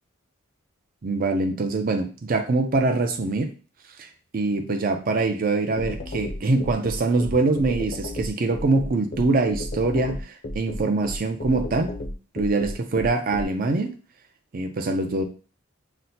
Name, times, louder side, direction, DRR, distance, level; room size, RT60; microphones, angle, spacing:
voice 1, 1.0-3.5 4.0-4.1 4.3-11.9 12.3-14.0 14.5-15.2, right 3 dB, 45° right, 6 dB, 0.5 m, -24 dB
sound 1, 5.8-13.4, left 1 dB, 45° left, 0.5 m, -32 dB
5.9 x 2.1 x 2.7 m, 0.36 s
head